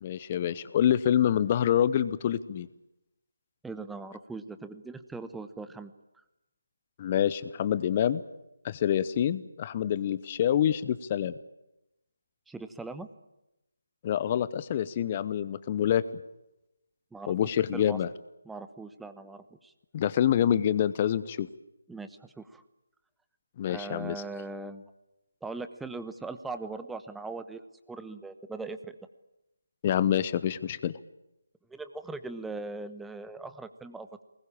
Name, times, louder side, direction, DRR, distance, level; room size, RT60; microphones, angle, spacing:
voice 1, 0.0-2.7 7.0-8.2 8.6-11.4 14.0-16.0 17.3-18.1 19.9-21.5 23.6-24.2 29.8-30.9, left 10 dB, 25° left, 16 dB, 0.9 m, -26 dB
voice 2, 3.6-5.9 12.5-13.1 17.1-17.3 17.7-18.0 18.4-19.7 21.9-22.6 23.7-24.8 25.4-29.0 31.7-34.2, right 3 dB, 5° right, 11 dB, 1.1 m, -40 dB
23.5 x 20.5 x 8.7 m, 0.90 s
figure-of-eight pair, 155°, 0 cm